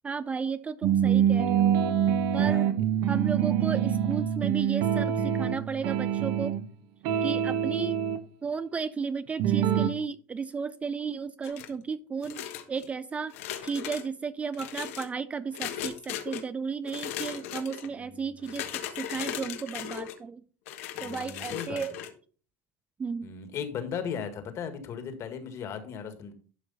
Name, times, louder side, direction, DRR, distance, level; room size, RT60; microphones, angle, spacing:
voice 1, 0.0-1.7 2.3-2.7 3.1-6.6 7.2-8.0 8.4-13.4 13.6-18.7 18.9-20.4 21.0-21.9 23.0-23.3, right 5 dB, 20° right, 15 dB, 0.3 m, -34 dB
sound 1, 0.8-6.7 7.0-8.2 9.4-9.9, right 9 dB, 60° right, 1.0 m, -25 dB
voice 2, 2.4-2.7 18.0-18.6 20.9-21.8 23.2-26.3, left 7 dB, 40° left, 8 dB, 1.7 m, -37 dB
sound 2, 11.4-11.8 12.2-12.9 13.3-14.1 14.5-15.1 15.5-16.4 16.8-17.9 18.4-20.2 20.7-22.1, left 11 dB, 85° left, 1.3 m, -37 dB
11.5 x 5.0 x 4.1 m, 0.41 s
supercardioid pair, 130°, 7 cm